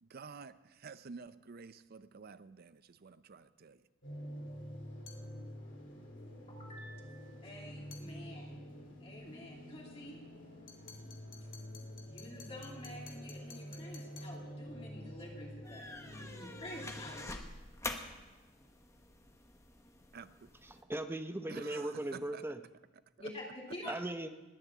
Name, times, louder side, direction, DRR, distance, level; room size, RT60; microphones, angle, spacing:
voice 1, 0.0-3.8 20.1-20.5 21.5-22.4 23.2-23.3, right 5 dB, 50° right, 14 dB, 0.5 m, -50 dB
sound 1, 4.0-17.4, equal, 65° left, 3.8 m, -48 dB
sound 2, 5.1-5.3 7.9-8.1 10.7-14.4, left 6 dB, 85° left, 1.9 m, -55 dB
voice 2, 6.5-8.6 9.0-10.2 12.1-17.4 23.2-23.4 23.7-23.9, left 1 dB, 30° left, -3 dB, 2.8 m, -49 dB
sound 3, 15.6-20.8, left 2 dB, 15° left, 1.1 m, -47 dB
voice 3, 20.7-22.6 23.9-24.3, right 1 dB, 10° right, 8 dB, 0.7 m, -38 dB
20.5 x 7.3 x 8.3 m, 1.2 s
head